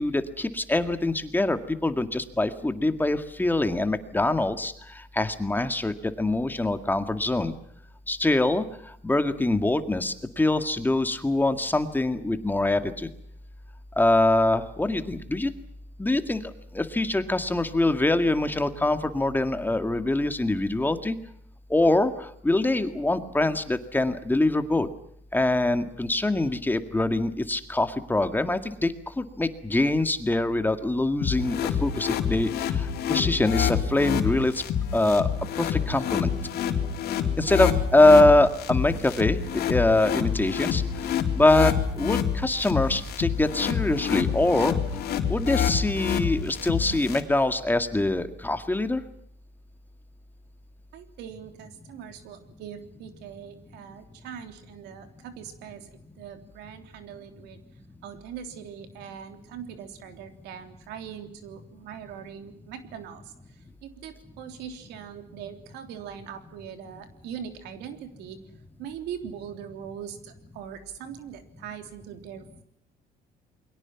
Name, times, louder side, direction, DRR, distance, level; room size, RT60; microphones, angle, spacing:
voice 1, 0.0-4.7 5.2-7.5 8.1-8.6 9.0-13.1 14.0-15.5 16.0-16.4 16.7-21.2 21.7-22.1 22.4-24.9 25.3-32.5 33.1-34.5 34.9-35.3 35.6-36.3 37.4-40.8 41.3-44.8 45.3-49.0, left 2 dB, 10° left, 8 dB, 2.0 m, -24 dB
sound 1, 31.2-47.2, left 8 dB, 70° left, 3.8 m, -27 dB
voice 2, 50.9-57.6 58.0-68.4 68.8-72.6, right 8 dB, 90° right, 7 dB, 3.4 m, -41 dB
28.5 x 22.5 x 5.9 m, 0.72 s
cardioid pair, 110°, 17 cm